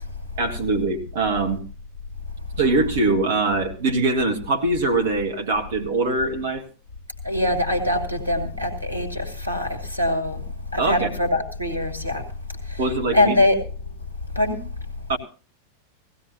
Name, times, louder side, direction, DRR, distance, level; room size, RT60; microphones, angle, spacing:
voice 1, 0.4-1.6 2.6-6.6 10.8-11.1 12.8-13.4 15.1-15.2, right 3 dB, 55° right, 1.8 m, -22 dB
voice 2, 7.2-10.4 10.7-12.2 12.7-12.8 13.1-13.6 14.3-14.6, left 1 dB, 90° right, 2.2 m, -23 dB
18.0 x 15.5 x 2.8 m
figure-of-eight pair, 90°, 0 cm